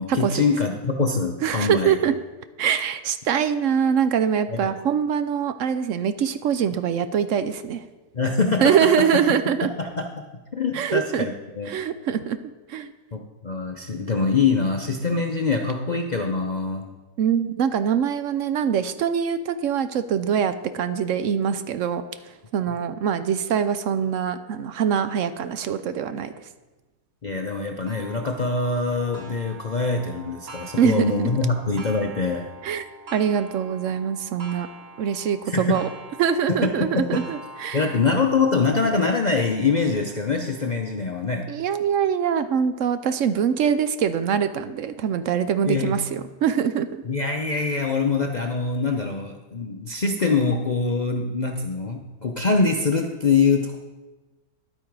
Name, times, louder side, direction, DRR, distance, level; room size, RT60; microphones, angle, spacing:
voice 1, 0.0-2.0 4.5-4.7 8.1-8.9 9.8-10.1 10.6-11.7 13.1-16.9 27.2-32.5 35.5-35.8 36.6-37.2 37.7-41.5 45.7-45.9 47.1-53.8, left 4 dB, 50° left, 2 dB, 0.5 m, -24 dB
voice 2, 1.4-2.2 2.6-7.8 8.6-9.7 10.7-11.3 11.7-12.4 12.7-12.9 17.2-22.0 22.5-26.3 30.8-31.1 32.6-32.8 33.1-34.7 35.0-35.9 36.2-37.9 41.5-46.9, right 8 dB, 65° right, 11 dB, 0.8 m, -23 dB
Clock, 27.9-43.2 43.8-43.9 44.4-44.5 45.5-45.6, right 3 dB, 45° right, 1.1 m, -45 dB
11.0 x 8.6 x 4.7 m, 1.2 s
omnidirectional pair, 1.7 m